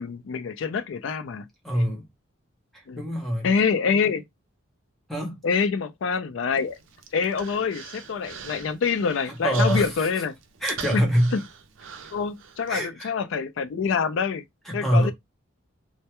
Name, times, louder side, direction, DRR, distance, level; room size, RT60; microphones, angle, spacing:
voice 1, 0.0-1.5 2.9-3.0 3.4-4.2 5.4-6.7 7.1-10.3 10.9-11.1 11.3-11.4 12.1-14.4 14.7-15.1, left 5 dB, 70° left, 0.3 m, -26 dB
voice 2, 1.6-2.1 2.7-3.5 5.1-5.4 9.3-10.2 10.6-11.3 12.7-13.1 14.6-15.1, equal, ahead, 0.6 m, -25 dB
Human voice, 6.5-12.8, right 6 dB, 70° right, 0.4 m, -42 dB
2.2 x 2.1 x 2.8 m
head